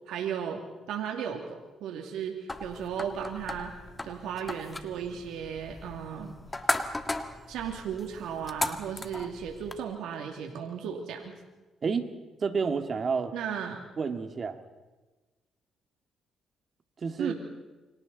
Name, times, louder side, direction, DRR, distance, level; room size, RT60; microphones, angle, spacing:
voice 1, 0.1-0.6 0.9-3.7 4.0-6.4 7.5-11.3 13.3-13.8 17.2-17.3, right 8 dB, 85° right, 2 dB, 2.5 m, -35 dB
sound 1, 2.5-9.8, left 2 dB, 20° left, 1.7 m, -36 dB
voice 2, 12.4-13.3 14.0-14.6 17.0-17.3, right 5 dB, 45° right, 7 dB, 2.1 m, -29 dB
29.0 x 25.0 x 4.1 m, 1.2 s
cardioid pair, 90°, 0 cm